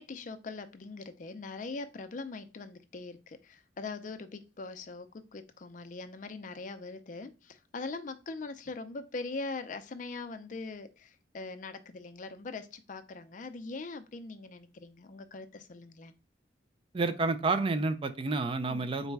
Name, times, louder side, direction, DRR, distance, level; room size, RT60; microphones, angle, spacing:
voice 1, 0.0-16.1 18.7-18.9, left 3 dB, 45° left, 10 dB, 0.4 m, -42 dB
voice 2, 16.9-19.1, right 3 dB, 30° right, 10 dB, 0.4 m, -29 dB
3.9 x 2.2 x 4.5 m, 0.31 s
head